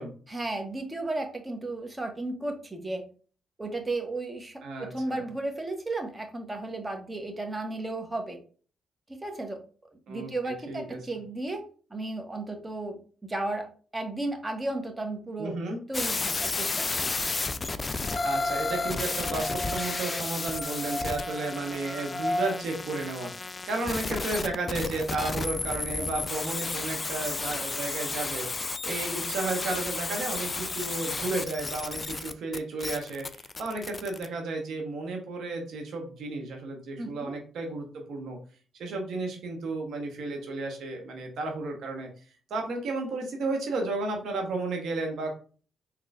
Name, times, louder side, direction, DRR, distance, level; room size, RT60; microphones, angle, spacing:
voice 1, 0.3-3.0 3.6-8.4 9.2-9.6 10.1-11.6 11.9-13.7 13.9-15.6 15.9-17.1 37.0-37.3, right 2 dB, 25° right, 5 dB, 1.1 m, -34 dB
voice 2, 4.6-5.3 10.1-11.0 15.4-15.8 18.2-38.4 38.7-42.1 42.5-45.3, right 3 dB, 65° right, 2 dB, 1.1 m, -33 dB
sound 1, 15.9-34.3, left 3 dB, 35° left, 0.4 m, -33 dB
sound 2, 18.0-22.5, left 1 dB, 15° left, 1.8 m, -34 dB
3.9 x 2.9 x 2.6 m, 0.41 s
hypercardioid pair, 40°, 0 cm